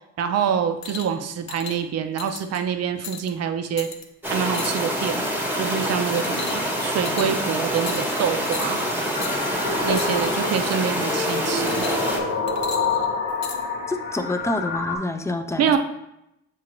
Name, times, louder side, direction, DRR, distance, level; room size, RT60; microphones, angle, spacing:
voice 1, 0.2-3.9 4.3-5.2 5.6-8.8 9.8-11.9 15.6-15.8, right 7 dB, 55° right, 8 dB, 0.5 m, -26 dB
sound 1, 0.8-1.1 1.5-1.8 2.2-2.6 3.0-3.3 3.8-4.0 4.5-5.0 5.4-5.7 6.2-6.8 7.1-7.5 7.9-8.2 8.5-8.8 9.2-9.4 10.0-10.4 11.7-12.2 12.5-13.6 14.4-14.5, left 6 dB, 60° left, 0.7 m, -36 dB
sound 2, 4.2-12.2, equal, 5° right, 0.9 m, -26 dB
sound 3, 9.1-15.0, left 4 dB, 80° left, 1.0 m, -27 dB
voice 2, 13.9-15.7, left 2 dB, 10° left, 7 dB, 0.3 m, -27 dB
7.1 x 2.4 x 3.1 m, 0.84 s
cardioid pair, 90°, 30 cm